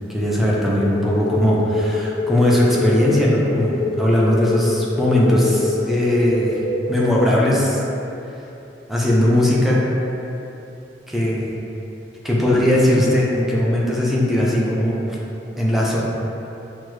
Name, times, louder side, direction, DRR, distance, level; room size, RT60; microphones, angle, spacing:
voice 1, 0.1-6.6 6.9-7.8 8.9-9.8 11.1-11.5 12.2-15.2 15.6-16.0, left 1 dB, ahead, -5 dB, 0.5 m, -18 dB
sound 1, 0.8-7.3, left 2 dB, 55° left, 0.5 m, -26 dB
6.2 x 2.1 x 3.1 m, 3.0 s
head